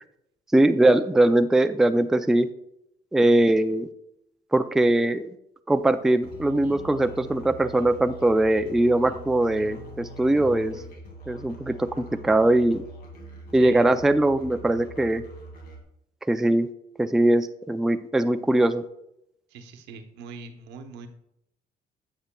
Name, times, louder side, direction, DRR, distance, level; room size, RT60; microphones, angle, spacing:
voice 1, 0.5-2.5 3.1-3.9 4.5-5.3 5.7-10.8 11.3-12.8 13.5-15.2 16.3-16.7 17.0-18.8, right 1 dB, 5° right, 9 dB, 0.3 m, -21 dB
sound 1, 5.7-10.9, left 2 dB, 30° left, 2.1 m, -48 dB
Musical instrument, 6.2-15.8, right 1 dB, 65° left, 2.2 m, -44 dB
voice 2, 13.6-13.9 19.5-21.1, right 4 dB, 85° right, 6 dB, 0.9 m, -42 dB
10.0 x 7.6 x 2.2 m, 0.78 s
cardioid pair, 110°, 17 cm